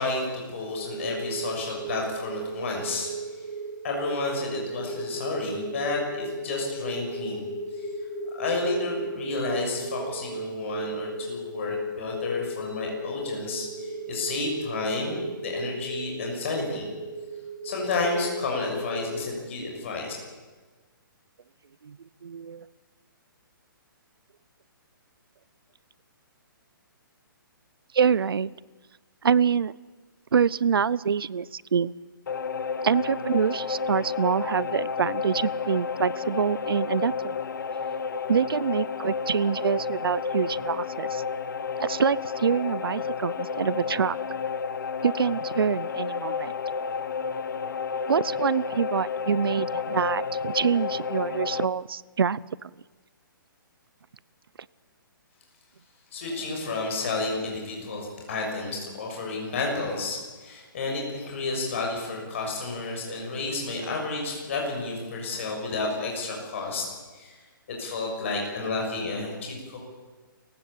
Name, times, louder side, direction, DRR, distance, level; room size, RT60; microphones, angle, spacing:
voice 1, 0.0-3.4 3.8-7.4 7.7-7.9 8.3-16.9 17.6-20.1 56.1-66.9 67.1-67.3 67.7-69.8, left 3 dB, 35° left, 0 dB, 6.7 m, -31 dB
sound 1, 0.7-19.2, right 1 dB, 15° left, 3.3 m, -35 dB
voice 2, 21.8-22.7 27.9-28.5 29.2-29.7 30.3-31.9 32.8-37.1 38.3-41.2 41.8-44.2 45.0-46.5 48.1-52.7, right 7 dB, 85° right, 22 dB, 0.7 m, -26 dB
sound 2, 32.3-51.6, left 5 dB, 60° left, 1.1 m, -31 dB
28.0 x 16.0 x 8.8 m, 1.3 s
hypercardioid pair, 180°, 12 cm